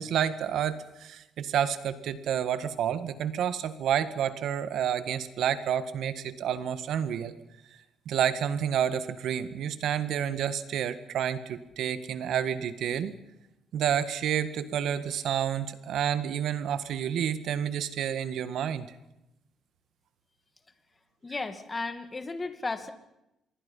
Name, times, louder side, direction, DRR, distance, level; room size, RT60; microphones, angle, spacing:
voice 1, 0.0-7.3 8.0-13.1 13.7-18.9, right 9 dB, 70° right, 12 dB, 1.7 m, -29 dB
voice 2, 21.2-22.9, left 3 dB, 25° left, 9 dB, 2.3 m, -34 dB
26.5 x 22.5 x 5.6 m, 0.88 s
cardioid pair, 100°, 0 cm